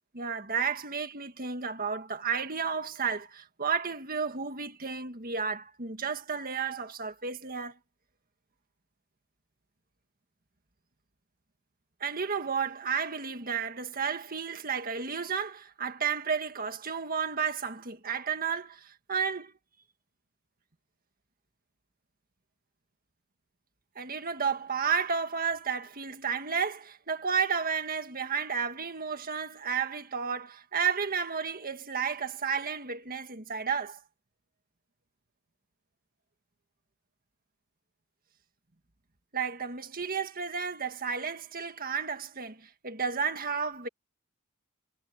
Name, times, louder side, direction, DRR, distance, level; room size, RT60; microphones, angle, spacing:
voice 1, 0.1-7.8 12.0-19.5 24.0-34.0 39.3-43.9, right 6 dB, 40° right, 1.7 m, -32 dB
head